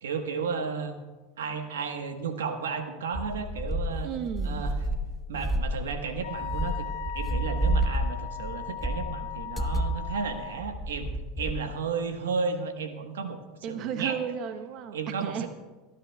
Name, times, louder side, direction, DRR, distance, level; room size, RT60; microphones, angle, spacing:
voice 1, 0.0-1.0 1.4-4.1 4.4-4.7 5.3-6.8 7.1-13.4 13.7-14.2 14.9-15.5, right 5 dB, 85° right, 7 dB, 1.2 m, -33 dB
sound 1, 3.1-11.5, right 1 dB, 10° left, 1.0 m, -30 dB
voice 2, 4.0-4.7 13.6-15.5, right 8 dB, 50° right, 9 dB, 0.8 m, -34 dB
Wind instrument woodwind instrument, 6.2-10.6, left 10 dB, 70° left, 1.5 m, -38 dB
23.5 x 12.0 x 2.3 m, 1.2 s
hypercardioid pair, 95°, 0 cm